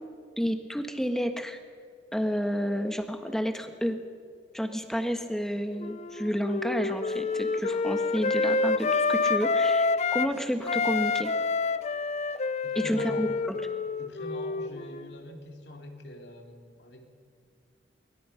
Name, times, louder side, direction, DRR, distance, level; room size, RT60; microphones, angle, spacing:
voice 1, 0.4-1.6 2.1-4.0 4.5-11.3 12.7-13.6, equal, 5° left, 6 dB, 1.3 m, -30 dB
Wind instrument woodwind instrument, 5.8-10.3 10.6-15.1, left 4 dB, 35° left, 0.5 m, -28 dB
voice 2, 12.6-13.3 14.0-17.1, left 1 dB, 65° left, 3 dB, 2.8 m, -43 dB
23.5 x 21.5 x 5.8 m, 2.1 s
head